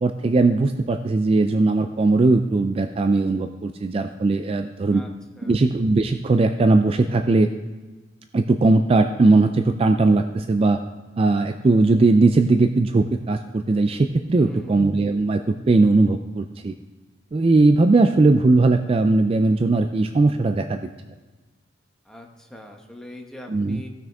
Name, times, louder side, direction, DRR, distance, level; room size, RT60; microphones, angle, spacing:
voice 1, 0.0-5.0 5.4-7.5 8.3-10.8 11.2-16.7 17.3-20.8 23.5-23.8, right 3 dB, 30° right, 7 dB, 0.3 m, -19 dB
voice 2, 14.3-14.8 22.0-23.9, left 1 dB, 5° left, 2 dB, 1.0 m, -42 dB
16.0 x 6.2 x 3.5 m, 1.2 s
head